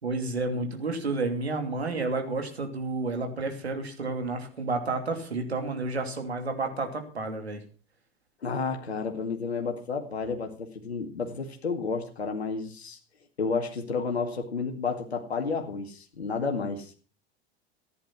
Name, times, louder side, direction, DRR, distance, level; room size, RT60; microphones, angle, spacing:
voice 1, 0.0-7.6, right 3 dB, 80° right, 5 dB, 2.9 m, -31 dB
voice 2, 8.4-13.0 13.4-16.9, left 4 dB, 80° left, 3 dB, 2.2 m, -31 dB
14.5 x 10.5 x 6.0 m, 0.38 s
figure-of-eight pair, 80°, 31 cm